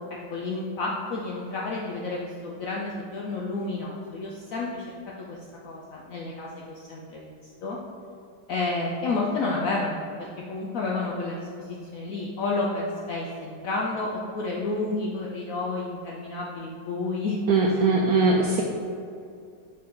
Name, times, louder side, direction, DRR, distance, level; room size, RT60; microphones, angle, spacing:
voice 1, 0.3-4.8 5.2-5.4 5.6-7.3 7.6-7.8 8.5-17.4, left 3 dB, 75° left, -3 dB, 0.7 m, -30 dB
voice 2, 17.5-18.6, right 3 dB, 75° right, -1 dB, 0.8 m, -20 dB
6.3 x 4.2 x 3.7 m, 2.4 s
omnidirectional pair, 2.0 m